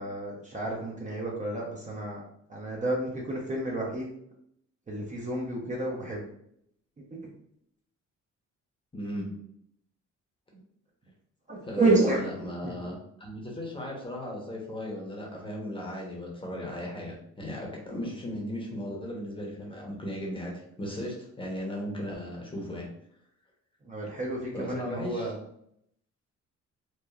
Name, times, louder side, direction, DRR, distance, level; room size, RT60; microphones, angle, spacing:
voice 1, 0.0-2.2 2.5-4.1 4.9-6.3 7.1-7.3 11.5-12.2 12.6-12.7 17.7-17.8 23.8-25.4, right 2 dB, 25° right, -2 dB, 0.6 m, -30 dB
voice 2, 8.9-9.3 11.6-22.9 24.5-25.3, left 1 dB, 15° left, -2 dB, 0.8 m, -36 dB
3.0 x 2.2 x 2.3 m, 0.70 s
cardioid pair, 90°, 30 cm